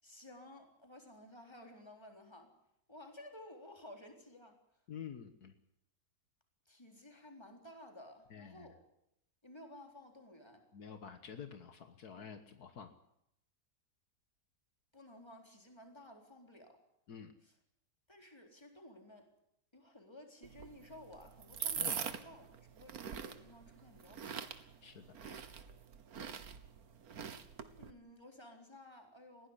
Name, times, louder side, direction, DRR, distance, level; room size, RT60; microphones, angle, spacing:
voice 1, 0.0-2.5 2.9-4.6 6.7-8.8 9.4-10.7 14.9-16.8 17.4-17.5 18.1-19.3 19.7-24.5 27.7-29.5, left 1 dB, 15° left, 3 dB, 4.0 m, -55 dB
voice 2, 4.9-5.5 8.3-8.7 10.7-12.9 17.1-17.3 21.6-22.1 24.8-25.4, left 7 dB, 70° left, 8 dB, 1.8 m, -49 dB
sound 1, 20.4-27.9, right 7 dB, 65° right, 1.7 m, -43 dB
21.0 x 16.0 x 10.0 m, 0.79 s
omnidirectional pair, 1.7 m